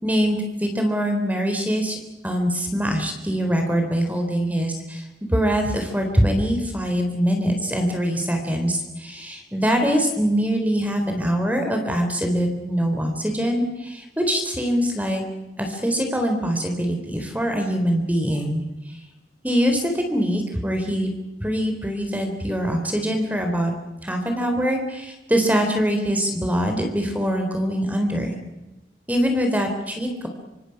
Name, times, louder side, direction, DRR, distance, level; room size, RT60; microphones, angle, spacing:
voice 1, 0.0-2.0 2.2-15.2 15.6-19.0 19.4-21.1 21.4-23.7 24.0-28.4 29.1-30.3, equal, 10° right, 4 dB, 3.7 m, -23 dB
26.5 x 26.0 x 6.0 m, 1.0 s
head